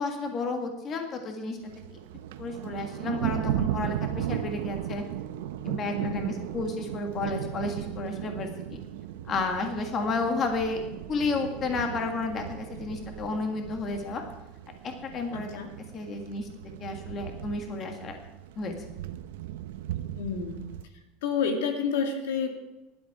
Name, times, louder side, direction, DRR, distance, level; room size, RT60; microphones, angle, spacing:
voice 1, 0.0-1.6 1.9-2.0 2.4-5.0 5.6-8.8 9.3-10.8 11.1-14.2 14.8-15.5 15.9-16.5 16.8-18.2 18.5-18.7, left 3 dB, 25° left, 4 dB, 1.7 m, -31 dB
Thunder, 1.6-20.8, right 12 dB, 85° right, 0.8 m, -36 dB
voice 2, 6.0-6.4 15.3-15.7 20.1-20.6 21.2-22.5, left 6 dB, 90° left, 4 dB, 2.3 m, -29 dB
15.0 x 11.5 x 4.8 m, 1.0 s
supercardioid pair, 165°, 0 cm